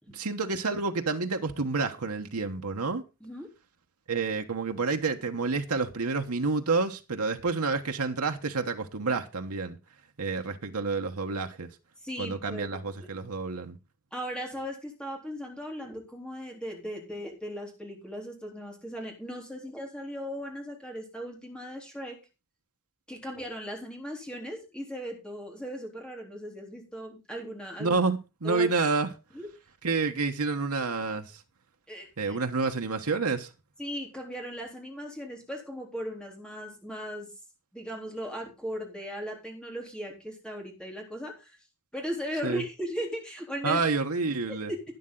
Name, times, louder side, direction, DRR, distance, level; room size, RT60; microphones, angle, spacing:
voice 1, 0.1-3.0 4.1-9.8 10.2-11.7 12.2-13.8 27.8-29.1 29.8-31.3 32.2-33.5 42.4-42.6 43.6-44.7, right 4 dB, 85° right, 1.2 m, -29 dB
voice 2, 3.2-3.5 12.0-12.7 14.1-22.2 23.1-28.0 28.4-28.7 29.3-29.5 31.9-32.4 33.8-37.3 37.7-41.6 41.9-43.8 44.5-44.8, equal, 5° left, 3.6 m, -37 dB
12.0 x 9.9 x 3.9 m
head